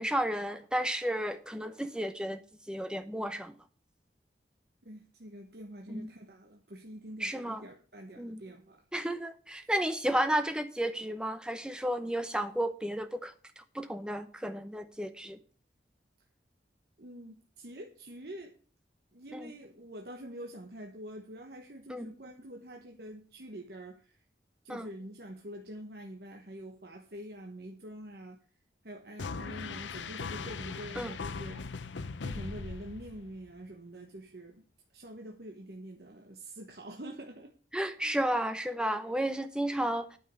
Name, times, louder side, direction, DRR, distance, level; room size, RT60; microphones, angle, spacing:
voice 1, 0.0-2.4 2.7-3.5 5.9-6.1 7.2-7.6 8.2-8.4 8.9-15.4 19.3-19.5 21.9-22.1 24.7-24.9 31.0-31.1 37.7-40.2, right 1 dB, 5° right, 9 dB, 0.8 m, -32 dB
voice 2, 4.8-8.8 17.0-18.5 19.1-24.2 24.6-28.4 28.8-31.7 32.2-34.6 34.9-37.5 38.0-38.1, right 1 dB, 60° right, 2 dB, 1.2 m, -46 dB
sound 1, 29.2-33.5, left 4 dB, 90° left, 0.7 m, -39 dB
9.2 x 5.5 x 8.1 m, 0.40 s
head